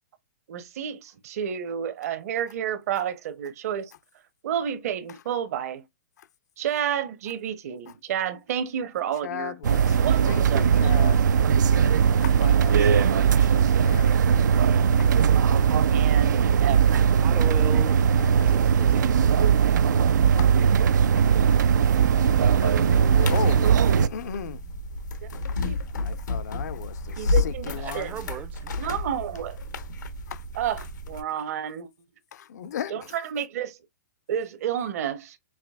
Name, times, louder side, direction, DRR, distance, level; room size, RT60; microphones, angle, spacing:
voice 1, 0.5-3.9 4.4-5.8 6.6-9.6 9.9-11.1 12.4-12.6 12.9-13.3 15.8-17.3 25.2-25.3 25.7-25.8 27.2-28.1 28.8-29.6 30.6-31.9 32.9-33.8 34.3-35.4, right 9 dB, 55° right, 0.9 m, -31 dB
voice 2, 9.2-10.0 10.3-11.2 11.7-11.9 12.2-14.4 15.0-15.1 18.2-18.6 20.4-20.5 21.2-21.3 22.1-22.3 22.6-23.7 24.0-24.6 25.9-28.2 30.3-30.4 32.3-33.1, left 9 dB, 70° left, 0.6 m, -36 dB
sound 1, 9.6-24.1, right 7 dB, 85° right, 0.4 m, -19 dB
voice 3, 17.2-18.0 18.4-19.1 27.8-28.8, right 8 dB, 15° right, 0.4 m, -36 dB
sound 2, 22.2-31.2, left 3 dB, 90° left, 1.1 m, -32 dB
5.8 x 2.6 x 2.3 m
hypercardioid pair, 150°, 10 cm